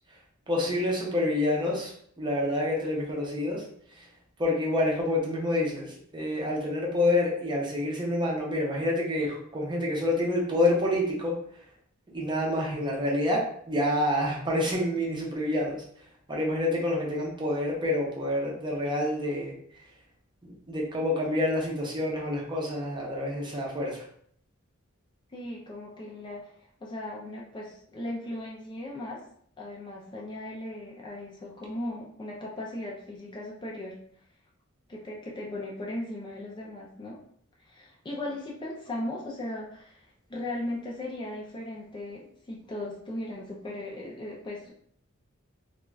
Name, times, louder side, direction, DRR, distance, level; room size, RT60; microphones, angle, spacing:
voice 1, 0.5-3.6 4.0-4.1 4.4-11.3 12.1-15.8 16.3-19.5 20.4-24.0, left 1 dB, 20° right, -2 dB, 0.6 m, -28 dB
voice 2, 25.3-26.5 26.8-29.2 29.6-34.0 34.9-37.2 37.6-44.7, left 1 dB, 20° left, -3 dB, 0.4 m, -37 dB
2.4 x 2.2 x 3.1 m, 0.63 s
head